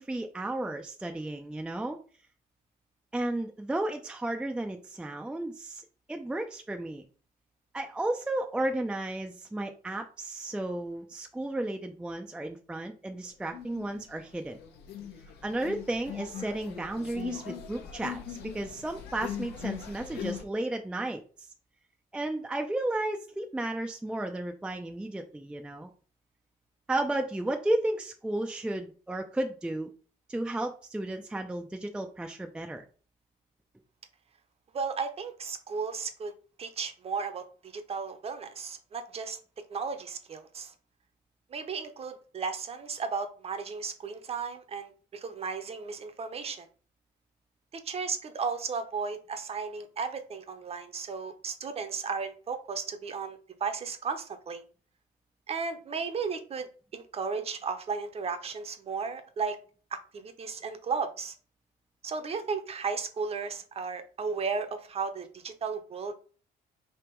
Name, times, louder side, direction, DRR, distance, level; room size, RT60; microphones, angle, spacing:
voice 1, 0.0-2.0 3.1-5.8 6.1-7.0 7.7-14.6 15.4-21.2 22.1-25.9 26.9-29.9 30.3-32.8, right 1 dB, 5° right, 4 dB, 0.4 m, -33 dB
sound 1, 13.5-14.1 14.4-20.4, left 9 dB, 75° left, 1.0 m, -40 dB
voice 2, 34.7-36.3 36.6-39.4 39.7-40.7 41.5-46.7 47.7-54.6 55.5-59.6 59.9-61.3 62.0-66.2, right 5 dB, 35° right, 9 dB, 0.7 m, -35 dB
3.5 x 2.8 x 4.5 m, 0.40 s
cardioid pair, 110°, 17 cm